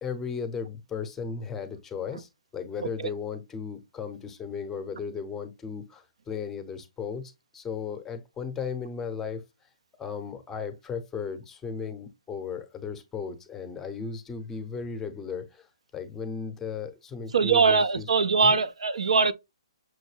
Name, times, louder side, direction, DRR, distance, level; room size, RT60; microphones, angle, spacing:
voice 1, 0.0-9.4 10.0-15.7 15.9-18.1 18.4-18.6, left 6 dB, 10° left, 0.6 m, -36 dB
voice 2, 17.3-19.3, right 5 dB, 80° right, 0.4 m, -21 dB
6.3 x 2.2 x 3.1 m
hypercardioid pair, 145°, 3 cm